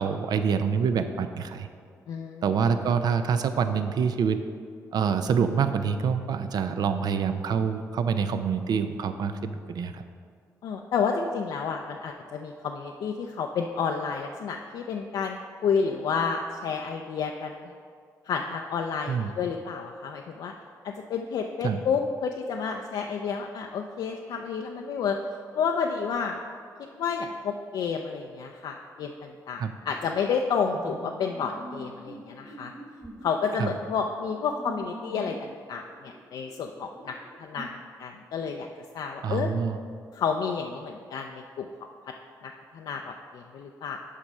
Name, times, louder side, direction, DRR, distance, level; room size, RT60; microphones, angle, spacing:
voice 1, 0.0-1.7 2.4-4.4 4.9-10.0 19.1-19.3 21.6-21.8 29.6-29.7 33.6-33.7 39.2-39.8, right 6 dB, 65° right, 9 dB, 0.5 m, -26 dB
voice 2, 2.1-2.4 2.8-2.9 10.6-17.6 18.3-20.5 20.8-25.2 25.6-26.4 26.8-32.7 33.2-38.7 38.9-39.5 40.1-41.7 42.4-44.0, left 6 dB, 75° left, 2 dB, 0.4 m, -30 dB
sound 1, 30.7-35.5 35.9-37.6, right 1 dB, 5° right, 1.2 m, -45 dB
7.4 x 4.9 x 5.4 m, 2.2 s
supercardioid pair, 65°, 7 cm